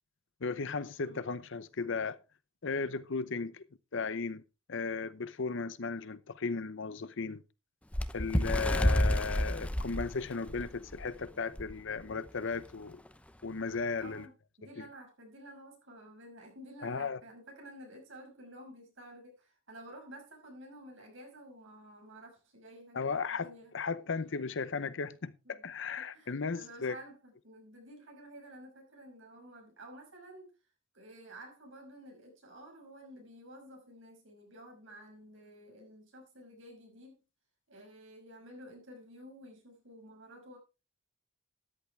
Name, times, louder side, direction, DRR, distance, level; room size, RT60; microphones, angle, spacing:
voice 1, 0.4-2.2 2.6-3.6 3.9-4.4 4.7-7.4 8.1-13.0 13.4-14.3 14.8-14.9 16.8-17.2 22.9-27.0, left 4 dB, 65° left, 0.7 m, -36 dB
Bird, 7.9-11.1 11.6-11.7 12.0-12.3 13.1-13.2, equal, 5° left, 0.7 m, -29 dB
voice 2, 14.0-23.7 25.5-30.5 30.9-37.2 37.7-40.6, right 1 dB, 65° right, 5.8 m, -52 dB
13.5 x 11.0 x 3.3 m
head